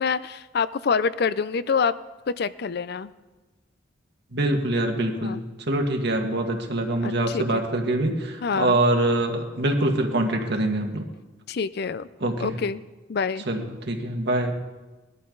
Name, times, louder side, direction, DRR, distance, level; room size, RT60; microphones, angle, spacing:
voice 1, 0.0-1.9 2.4-3.1 5.2-5.4 7.0-7.6 8.4-8.8 11.5-12.1 12.4-12.8 13.1-13.5, left 5 dB, 60° left, 16 dB, 0.5 m, -26 dB
voice 2, 4.3-11.1 12.2-12.6 13.5-14.5, right 1 dB, 60° right, 2 dB, 1.8 m, -24 dB
19.5 x 12.5 x 3.9 m, 1.2 s
head